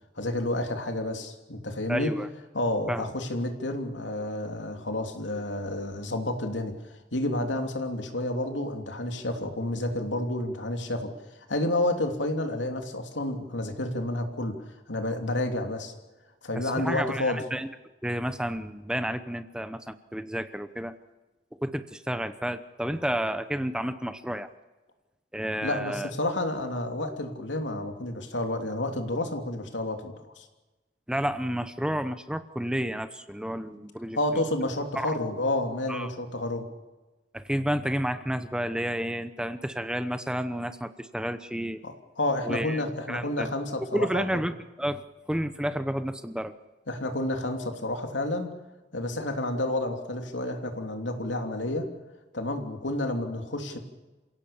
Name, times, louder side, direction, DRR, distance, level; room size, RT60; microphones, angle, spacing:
voice 1, 0.2-2.1 2.5-6.7 7.1-11.1 11.5-14.6 14.9-15.9 16.4-17.4 25.6-30.4 34.1-36.6 41.8-44.2 46.9-48.5 48.9-51.9 52.3-53.8, left 1 dB, 85° left, 4 dB, 3.1 m, -30 dB
voice 2, 1.9-2.3 2.9-3.0 16.6-17.7 18.0-20.9 21.6-24.5 25.3-26.1 31.1-34.4 35.0-35.2 35.9-36.1 37.3-41.8 42.4-43.5 43.9-45.0 45.3-46.5, equal, 5° right, 11 dB, 0.8 m, -31 dB
28.0 x 17.0 x 7.2 m, 1.2 s
head